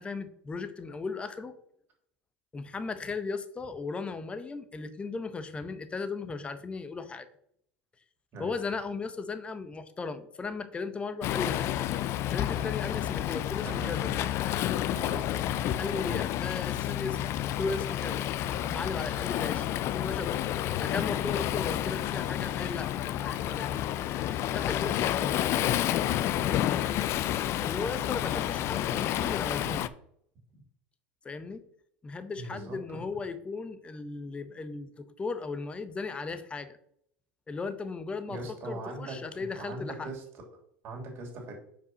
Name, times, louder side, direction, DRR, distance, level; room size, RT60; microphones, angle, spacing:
voice 1, 0.0-1.6 2.5-7.3 8.4-11.6 12.3-14.1 15.8-17.2 17.4-18.3 18.6-20.4 20.8-23.8 24.5-25.4 27.6-29.8 31.2-31.6 32.0-36.8 37.5-38.4 38.6-40.1, left 4 dB, 20° left, 12 dB, 0.8 m, -36 dB
Waves surf, 11.2-29.9, left 12 dB, 50° left, 0.4 m, -30 dB
voice 2, 13.6-14.2 14.9-15.3 17.0-17.1 24.8-24.9 26.3-26.5 32.3-33.0 38.3-40.2 40.8-41.6, right 2 dB, 45° right, 0 dB, 3.1 m, -41 dB
5.5 x 4.7 x 6.1 m, 0.70 s
hypercardioid pair, 95°, 6 cm